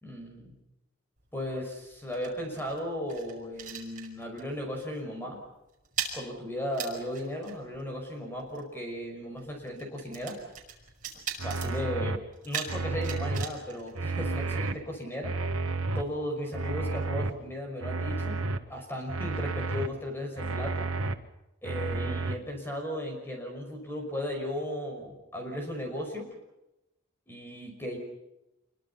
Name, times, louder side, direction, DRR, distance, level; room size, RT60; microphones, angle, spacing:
voice 1, 0.0-0.6 1.3-5.4 6.1-10.4 11.4-15.3 15.9-18.4 18.7-20.9 21.6-26.3 27.3-28.0, equal, 10° left, 2 dB, 5.6 m, -36 dB
sound 1, 1.2-4.5 4.8-5.1 5.3-14.7, right 7 dB, 35° right, 5.5 m, -41 dB
sound 2, 11.4-12.2 12.7-13.4 13.9-14.8 15.2-16.0 16.5-17.3 17.8-18.6 19.1-19.9 20.4-21.1 21.6-22.4, right 3 dB, 80° right, 1.7 m, -31 dB
27.5 x 23.5 x 5.8 m, 0.92 s
head